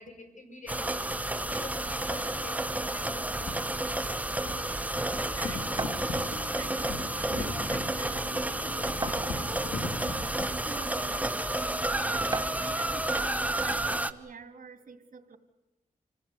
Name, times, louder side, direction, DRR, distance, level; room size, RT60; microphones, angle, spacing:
voice 1, 0.0-3.9 10.7-11.6 13.0-13.3, left 3 dB, 65° left, 5 dB, 6.2 m, -48 dB
sound 1, 0.7-14.1, right 1 dB, 10° right, 1.2 m, -31 dB
sound 2, 3.4-10.4, left 3 dB, 80° left, 2.2 m, -40 dB
voice 2, 4.8-9.7 10.0-11.3 11.6-15.4, right 5 dB, 75° right, 8 dB, 2.7 m, -47 dB
sound 3, 5.8-6.1 7.2-7.3 7.7-7.8 9.0-9.7 10.5-10.6 12.3-12.7, right 3 dB, 30° right, 1.7 m, -35 dB
27.0 x 17.0 x 9.9 m, 0.94 s
cardioid pair, 70°, 14 cm